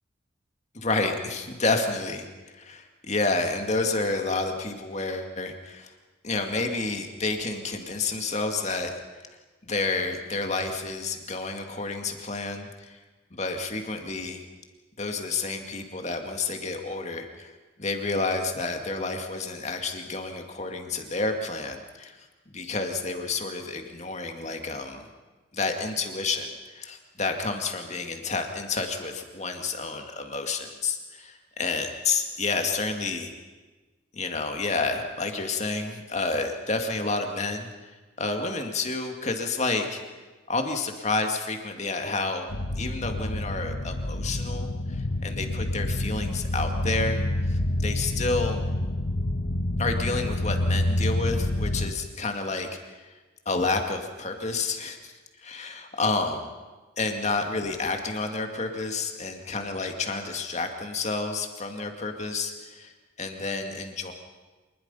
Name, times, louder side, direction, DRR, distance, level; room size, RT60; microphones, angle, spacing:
voice 1, 0.7-2.3 2.5-5.9 6.2-8.9 9.6-13.0 13.3-14.4 15.0-17.5 17.8-22.2 22.5-25.0 25.5-33.3 34.1-37.9 38.2-40.0 40.5-48.7 49.8-53.1 53.5-55.1 55.4-56.5 57.0-62.9 63.2-64.1, left 3 dB, 35° left, 4 dB, 2.1 m, -30 dB
sound 1, 42.5-51.9, left 1 dB, 80° left, 1.4 m, -28 dB
26.0 x 20.5 x 5.6 m, 1.3 s
head